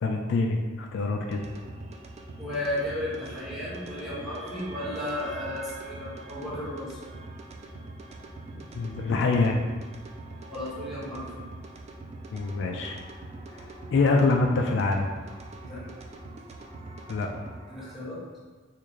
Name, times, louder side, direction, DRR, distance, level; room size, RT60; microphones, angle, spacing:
voice 1, 0.0-1.4 8.5-9.6 12.3-13.0 13.5-15.1 17.1-17.3, left 3 dB, 65° left, 2 dB, 0.3 m, -25 dB
sound 1, 1.3-17.9, right 2 dB, 35° right, 0.3 m, -43 dB
voice 2, 2.4-7.0 10.5-11.3 15.7-15.8 17.7-18.2, left 1 dB, ahead, -9 dB, 1.1 m, -34 dB
3.6 x 2.5 x 3.0 m, 1.4 s
head